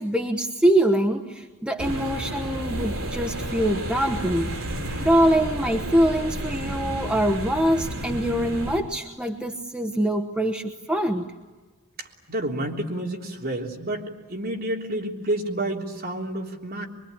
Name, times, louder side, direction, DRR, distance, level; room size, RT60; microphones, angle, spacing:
voice 1, 0.0-4.5 5.0-11.3, right 1 dB, 5° right, 4 dB, 1.1 m, -24 dB
sound 1, 1.8-8.8, right 1 dB, 70° right, 4.5 m, -31 dB
voice 2, 12.3-14.0 14.3-16.9, right 1 dB, 45° right, 0 dB, 3.6 m, -29 dB
24.0 x 23.5 x 9.7 m, 1.3 s
head